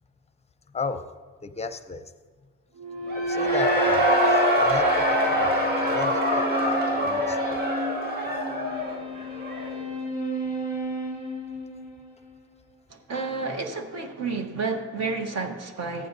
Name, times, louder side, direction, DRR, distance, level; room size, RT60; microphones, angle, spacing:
voice 1, 1.4-2.1 3.1-5.6 5.8-7.6, left 4 dB, 20° left, 10 dB, 0.6 m, -33 dB
sound 1, 2.8-12.4, right 2 dB, 85° right, 2.3 m, -32 dB
Cheering / Crowd, 3.1-9.8, equal, 30° right, 2.0 m, -24 dB
voice 2, 12.9-16.1, right 4 dB, 60° right, 4 dB, 1.3 m, -30 dB
14.5 x 9.3 x 2.7 m, 1.4 s
cardioid pair, 90°, 30 cm